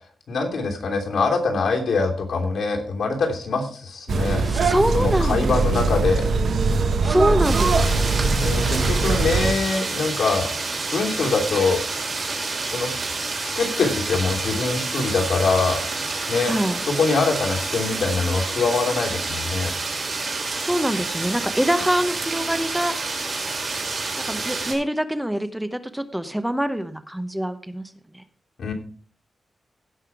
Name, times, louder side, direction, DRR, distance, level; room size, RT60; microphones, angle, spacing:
voice 1, 0.3-4.4 4.9-6.3 8.4-10.5 10.9-11.8 12.6-12.9 13.4-15.8 16.3-16.5 16.9-19.7 28.6-28.7, left 4 dB, 80° left, 0 dB, 3.0 m, -23 dB
sound 1, 4.1-9.5, right 3 dB, 75° right, 1.2 m, -21 dB
voice 2, 4.3-5.4 5.7-6.0 7.0-8.0 16.5-16.8 20.5-22.9 24.2-28.2, equal, 5° right, 10 dB, 0.8 m, -25 dB
sound 2, 7.4-24.7, right 3 dB, 50° right, 4.4 m, -28 dB
16.5 x 5.6 x 4.7 m, 0.43 s
wide cardioid pair, 130°, 0 cm